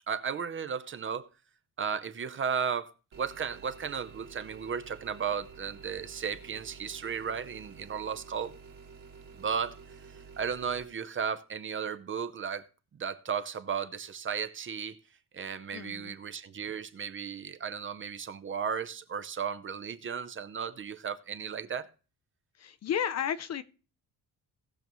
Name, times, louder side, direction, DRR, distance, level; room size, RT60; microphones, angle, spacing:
voice 1, 0.1-1.3 1.8-8.5 9.3-12.7 12.9-15.0 15.3-21.9, right 7 dB, 30° right, 0.7 m, -35 dB
sound 1, 3.1-10.8, right 5 dB, 55° right, 2.2 m, -51 dB
voice 2, 15.7-16.2 22.6-23.6, left 9 dB, 45° left, 0.6 m, -33 dB
18.0 x 6.8 x 3.0 m
cardioid pair, 165°, 38 cm